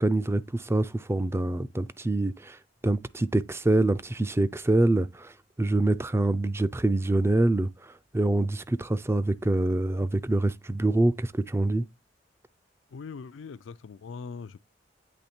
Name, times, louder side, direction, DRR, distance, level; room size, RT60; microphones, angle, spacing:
voice 1, 0.0-2.6 2.8-5.3 5.6-11.8, right 2 dB, 15° right, 0.4 m, -25 dB
voice 2, 12.9-14.6, left 5 dB, 85° left, 0.4 m, -41 dB
8.4 x 3.2 x 4.3 m
head